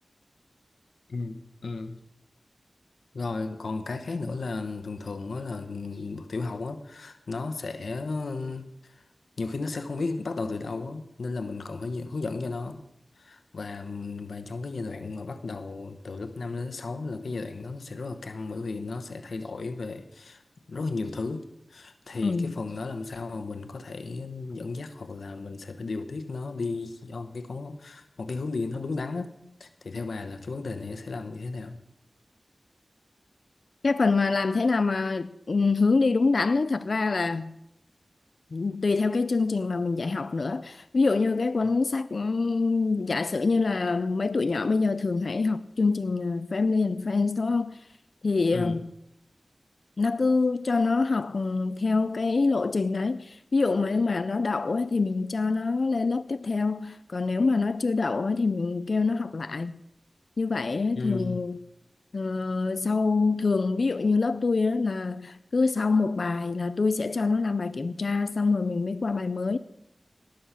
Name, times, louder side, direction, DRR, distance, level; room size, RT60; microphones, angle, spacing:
voice 1, 1.1-2.0 3.1-9.0 9.4-12.8 13.2-20.4 20.7-29.3 29.6-31.8 48.5-48.8 60.9-61.4, left 3 dB, 85° left, 0.9 m, -34 dB
voice 2, 22.2-22.5 33.8-37.6 38.5-47.8 48.2-48.9 50.0-59.8 60.4-61.6 62.1-69.6, left 4 dB, 70° left, 0.4 m, -25 dB
18.0 x 6.4 x 5.7 m
cardioid pair, 50°, 0 cm